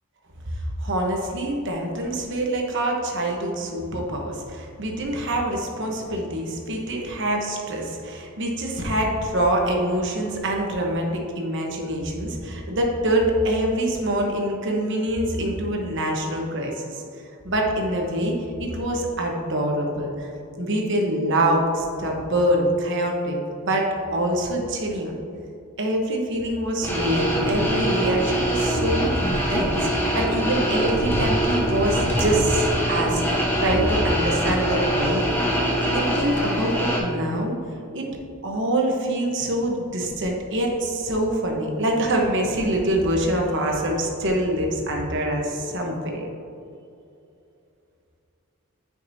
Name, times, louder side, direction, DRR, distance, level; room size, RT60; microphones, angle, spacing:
voice 1, 0.8-17.0 17.4-18.3 18.6-20.3 20.6-25.1 25.8-33.2 33.6-35.2 35.9-37.6 37.9-38.1 38.4-46.3, right 1 dB, 55° right, 0 dB, 1.1 m, -25 dB
sound 1, 26.8-37.0, equal, 10° left, 1.1 m, -23 dB
9.5 x 5.2 x 2.8 m, 2.6 s
head